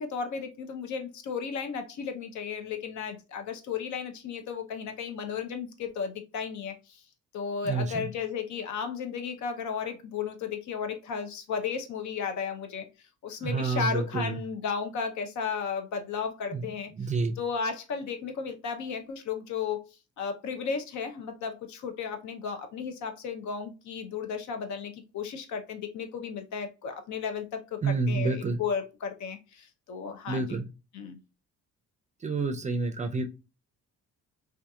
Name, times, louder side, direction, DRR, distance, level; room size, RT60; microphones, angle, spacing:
voice 1, 0.0-7.0 7.3-12.9 13.2-19.9 20.2-30.6 30.9-31.2, left 6 dB, 70° left, 0.6 m, -34 dB
voice 2, 7.6-8.1 13.4-14.4 16.5-16.7 17.0-17.4 27.8-28.6 30.3-30.7 32.2-33.2, right 4 dB, 25° right, 0.4 m, -29 dB
2.7 x 2.4 x 2.2 m
cardioid pair, 90°, 30 cm